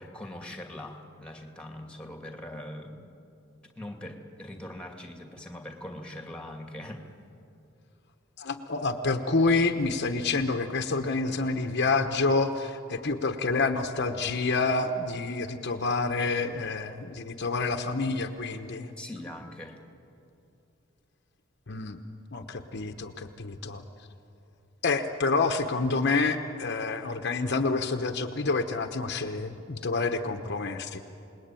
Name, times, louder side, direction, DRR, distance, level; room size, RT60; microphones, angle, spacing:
voice 1, 0.0-3.2 3.6-7.0 19.0-19.8, left 1 dB, 5° left, 4 dB, 2.2 m, -42 dB
voice 2, 8.4-18.9 21.7-22.0 22.3-23.8 24.8-31.0, left 3 dB, 55° left, 7 dB, 1.1 m, -28 dB
28.5 x 20.0 x 9.1 m, 2.7 s
head